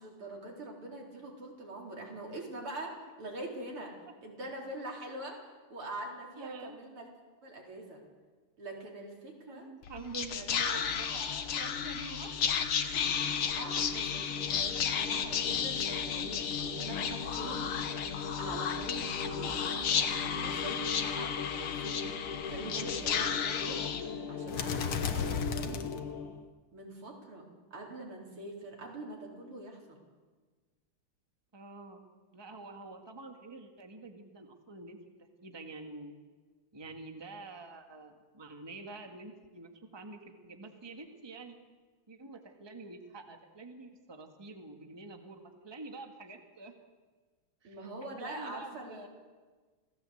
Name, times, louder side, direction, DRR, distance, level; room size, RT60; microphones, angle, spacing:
voice 1, 0.0-7.1 7.4-8.0 8.6-9.7 10.3-11.2 11.5-11.7 13.6-17.8 18.4-22.0 22.4-23.8 24.3-25.9 26.7-27.4 27.7-30.0 47.6-49.1, right 2 dB, 85° right, -1 dB, 5.1 m, -44 dB
voice 2, 6.4-6.8 9.5-12.4 12.9-13.3 31.5-32.1 32.3-35.0 35.4-36.1 36.7-41.6 42.1-46.7 47.6-47.8 48.2-49.1, right 3 dB, 15° right, 4 dB, 1.6 m, -47 dB
Whispering, 9.8-26.4, left 7 dB, 90° left, 2.3 m, -33 dB
27.0 x 17.0 x 7.9 m, 1.4 s
omnidirectional pair, 2.3 m